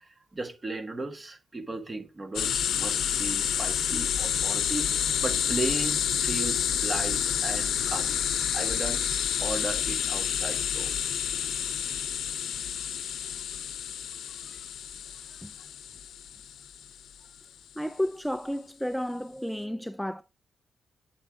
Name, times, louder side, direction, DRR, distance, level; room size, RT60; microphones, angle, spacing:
voice 1, 0.0-8.2 8.5-9.1 9.4-10.9 13.1-13.6 14.4-14.6 15.3-15.4, right 2 dB, 25° right, 1.4 m, -36 dB
sound 1, 2.3-16.9, left 9 dB, 85° left, 0.7 m, -29 dB
voice 2, 17.8-20.2, equal, ahead, 0.3 m, -32 dB
8.9 x 8.6 x 3.6 m
wide cardioid pair, 135°, 0 cm